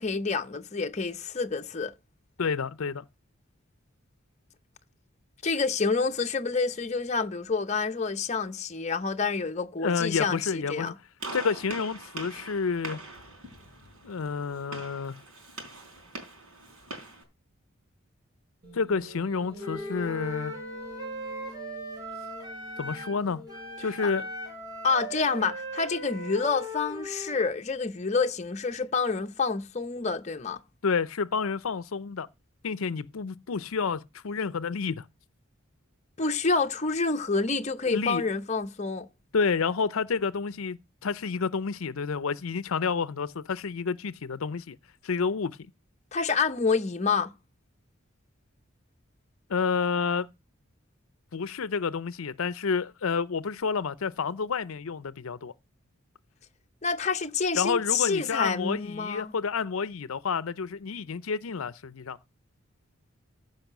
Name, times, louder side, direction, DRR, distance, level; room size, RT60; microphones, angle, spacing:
voice 1, 0.0-1.9 5.4-10.9 24.0-24.1 24.8-30.6 36.2-39.1 46.1-47.3 56.8-59.3, left 4 dB, 30° left, 0.7 m, -28 dB
voice 2, 2.4-3.0 9.8-10.9 11.3-13.0 14.0-15.2 18.7-20.5 22.8-23.4 23.8-24.3 30.8-32.3 32.6-35.0 37.8-38.2 39.3-44.8 45.0-45.6 49.5-50.3 51.3-55.5 57.5-62.2, left 5 dB, 75° left, 0.6 m, -29 dB
Gunshot gunfire, 11.2-17.2, right 2 dB, 80° right, 4.0 m, -42 dB
sound 1, 18.6-26.0, equal, 45° right, 3.8 m, -47 dB
Wind instrument woodwind instrument, 19.6-23.2 23.5-27.4, equal, 20° right, 4.0 m, -38 dB
14.5 x 5.5 x 5.9 m
head